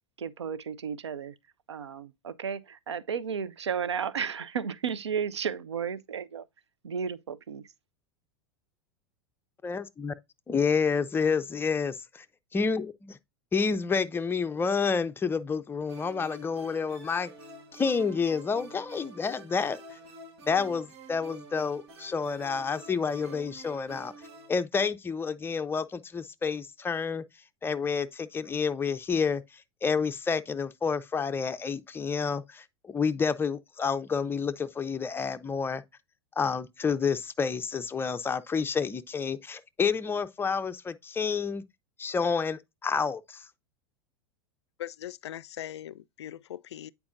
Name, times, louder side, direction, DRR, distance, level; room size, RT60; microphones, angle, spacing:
voice 1, 0.2-1.3 1.7-6.5 6.8-7.7, right 7 dB, 90° right, 0.5 m, -33 dB
voice 2, 9.6-10.1 10.5-12.2 12.5-13.2 13.5-17.3 17.7-19.8 20.5-24.1 24.5-27.2 27.6-29.4 29.8-35.8 36.4-41.6 42.0-43.4, left 5 dB, 15° left, 0.5 m, -29 dB
sound 1, 15.9-24.6, right 3 dB, 70° right, 1.5 m, -48 dB
voice 3, 44.8-46.9, left 11 dB, 80° left, 0.4 m, -40 dB
8.6 x 4.6 x 2.6 m
hypercardioid pair, 95°, 14 cm